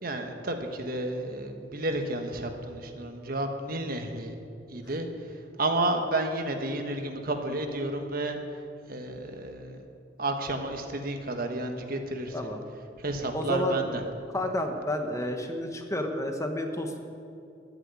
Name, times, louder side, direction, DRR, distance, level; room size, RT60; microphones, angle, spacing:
voice 1, 0.0-4.3 4.7-5.1 5.6-8.4 8.9-9.8 10.2-12.3 13.0-14.0, right 2 dB, 55° right, 5 dB, 1.3 m, -31 dB
voice 2, 12.3-12.7 13.3-13.9 14.3-17.0, left 1 dB, 15° left, 5 dB, 1.1 m, -30 dB
13.5 x 7.7 x 9.7 m, 2.6 s
head